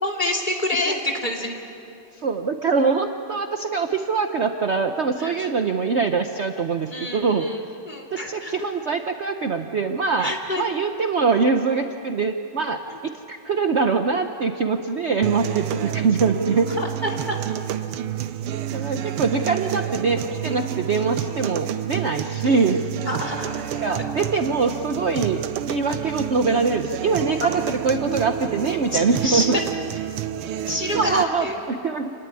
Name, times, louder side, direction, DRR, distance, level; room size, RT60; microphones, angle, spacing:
voice 1, 0.0-1.5 5.2-5.3 6.9-8.5 10.2-10.6 12.9-13.0 15.7-15.9 16.8-17.4 22.2-22.4 23.1-23.8 28.9-29.4 30.7-31.6, left 1 dB, 20° left, 2 dB, 2.8 m, -28 dB
voice 2, 2.2-7.5 8.1-16.7 18.7-22.8 23.8-25.4 25.7-29.6 30.9-32.1, right 4 dB, 65° right, 6 dB, 0.6 m, -23 dB
sound 1, 15.2-31.2, right 11 dB, 80° right, 1.7 m, -29 dB
27.5 x 19.5 x 9.8 m, 2.7 s
omnidirectional pair, 2.4 m